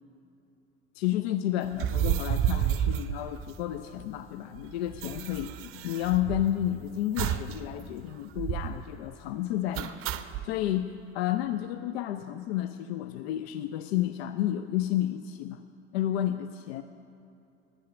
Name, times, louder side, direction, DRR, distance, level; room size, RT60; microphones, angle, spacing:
voice 1, 0.9-10.0 10.4-15.6 15.9-16.8, left 12 dB, 65° left, 10 dB, 0.5 m, -31 dB
sound 1, 1.7-4.0 4.3-4.4 4.6-6.7 7.2-7.6 7.9-8.0 8.3-8.8 9.7-10.5, right 10 dB, 40° right, 0.6 m, -30 dB
10.0 x 9.8 x 6.0 m, 2.8 s
figure-of-eight pair, 65°, 34 cm